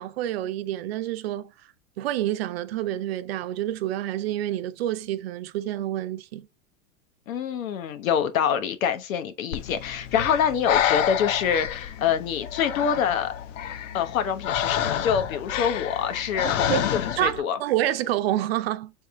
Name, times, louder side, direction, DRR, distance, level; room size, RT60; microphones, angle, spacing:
voice 1, 0.0-1.5 2.0-6.5 16.7-16.9 17.2-18.9, right 13 dB, 50° right, 0.5 m, -28 dB
voice 2, 7.3-13.3 13.9-17.6, left 8 dB, 80° left, 1.0 m, -26 dB
Breathing, 9.5-17.4, left 10 dB, 65° left, 0.7 m, -29 dB
3.5 x 3.5 x 4.3 m
supercardioid pair, 160°, 40 cm